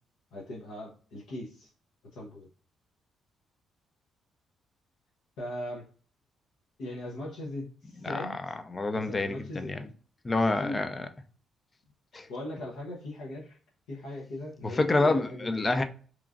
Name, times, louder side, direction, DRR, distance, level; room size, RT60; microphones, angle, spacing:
voice 1, 0.3-1.7 2.1-2.5 5.4-5.8 6.8-8.4 8.9-9.7 10.6-10.8 12.3-13.6 13.9-15.6, left 1 dB, 85° left, 0.7 m, -39 dB
voice 2, 8.0-8.3 8.7-9.8 10.2-11.1 12.1-12.3 14.6-15.8, left 2 dB, 25° left, 0.4 m, -27 dB
3.0 x 2.4 x 2.4 m
cardioid pair, 90°, 0 cm